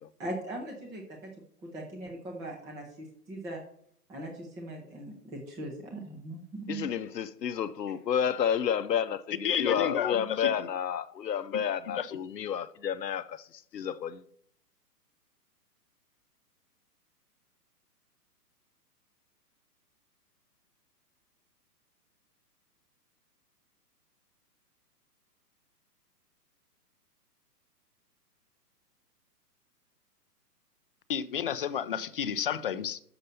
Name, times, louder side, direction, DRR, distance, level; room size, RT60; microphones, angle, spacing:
voice 1, 0.2-1.3 1.6-3.6 4.1-6.8, right 1 dB, 5° right, 0.6 m, -40 dB
voice 2, 6.7-14.2, left 8 dB, 85° left, 0.7 m, -31 dB
voice 3, 9.4-10.2 10.4-10.5 12.0-12.1 31.1-33.0, left 8 dB, 40° left, 0.4 m, -30 dB
6.7 x 5.4 x 6.7 m
hypercardioid pair, 125°, 48 cm